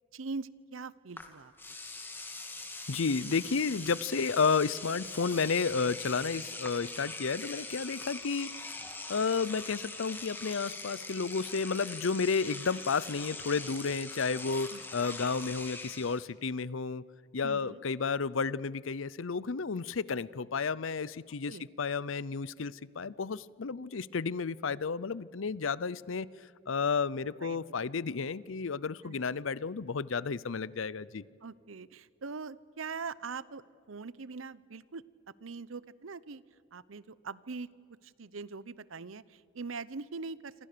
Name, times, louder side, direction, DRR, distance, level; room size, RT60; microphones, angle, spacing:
voice 1, 0.1-1.5 14.7-14.8 17.4-17.8 21.5-21.6 27.4-27.6 29.0-29.3 31.4-35.0 35.4-36.4 36.7-37.7 38.0-40.5, right 4 dB, 85° right, 19 dB, 0.8 m, -42 dB
Engine / Domestic sounds home sounds, 1.2-1.3 1.6-16.2, left 3 dB, 10° left, 2.3 m, -42 dB
voice 2, 2.9-8.8 9.1-17.0 17.3-26.3 26.7-31.2, left 5 dB, 80° left, 20 dB, 0.6 m, -32 dB
27.5 x 26.5 x 6.8 m, 2.3 s
head